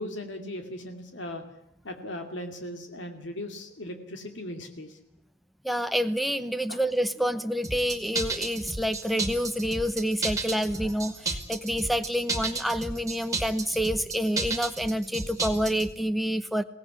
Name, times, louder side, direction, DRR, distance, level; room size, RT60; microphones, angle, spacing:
voice 1, 0.0-1.4 1.8-5.0 6.7-6.8, left 1 dB, 70° left, 5 dB, 2.5 m, -38 dB
voice 2, 5.6-16.6, equal, ahead, 9 dB, 0.9 m, -28 dB
sound 1, 7.6-15.9, right 3 dB, 20° right, 2.2 m, -32 dB
23.0 x 17.5 x 9.8 m, 0.75 s
head